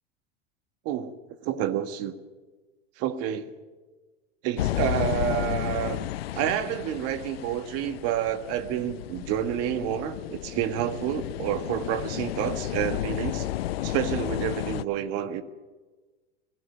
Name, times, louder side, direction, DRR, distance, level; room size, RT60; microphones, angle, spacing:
voice 1, 1.4-2.2 3.0-3.5 4.4-6.1 6.3-13.5 13.8-15.4, right 10 dB, 50° right, 9 dB, 1.7 m, -29 dB
sound 1, 4.6-14.8, left 13 dB, 75° left, 0.7 m, -32 dB
22.0 x 16.0 x 9.4 m, 1.3 s
hypercardioid pair, 90°, 30 cm